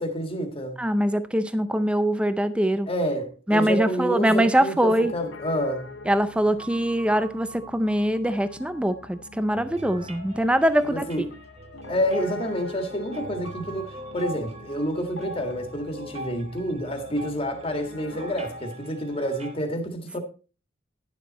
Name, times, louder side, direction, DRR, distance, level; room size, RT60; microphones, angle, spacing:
voice 1, 0.0-0.8 2.9-5.9 10.9-11.3 11.9-20.2, equal, 30° left, 1.8 m, -28 dB
voice 2, 0.8-2.9 3.5-5.1 6.1-11.0, equal, 5° right, 0.5 m, -23 dB
Piano, 4.9-18.6, left 2 dB, 75° left, 1.2 m, -44 dB
sound 1, 9.5-19.6, right 1 dB, 30° right, 1.1 m, -42 dB
11.0 x 7.3 x 4.1 m
head